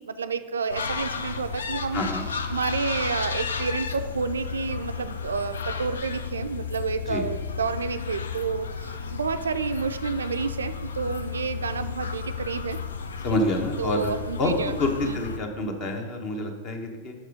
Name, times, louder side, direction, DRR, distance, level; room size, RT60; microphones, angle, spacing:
voice 1, 0.0-2.0 2.5-12.8 13.8-14.7 15.0-15.2, right 5 dB, 70° right, 10 dB, 0.4 m, -30 dB
sound 1, 0.7-15.4, left 6 dB, 70° left, 0.5 m, -33 dB
voice 2, 1.9-2.2 7.1-7.2 13.2-14.1 14.4-17.1, left 1 dB, 35° left, 4 dB, 1.2 m, -27 dB
6.2 x 6.0 x 5.1 m, 1.5 s
figure-of-eight pair, 90°, 0 cm